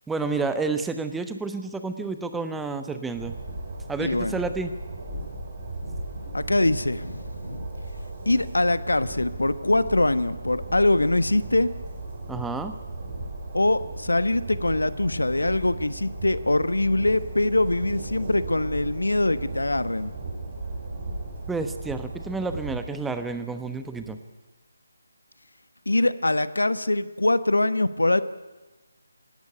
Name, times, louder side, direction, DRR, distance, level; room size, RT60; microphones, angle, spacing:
voice 1, 0.1-3.4 3.9-4.7 12.3-12.7 21.5-24.2, right 4 dB, 5° right, 8 dB, 1.0 m, -30 dB
Train, 3.1-22.8, right 2 dB, 40° right, 7.0 m, -36 dB
voice 2, 4.0-4.4 6.3-7.7 8.2-11.7 13.5-20.1 25.9-28.2, left 2 dB, 80° left, 14 dB, 1.2 m, -23 dB
18.0 x 17.5 x 9.9 m, 1.2 s
figure-of-eight pair, 150°, 0 cm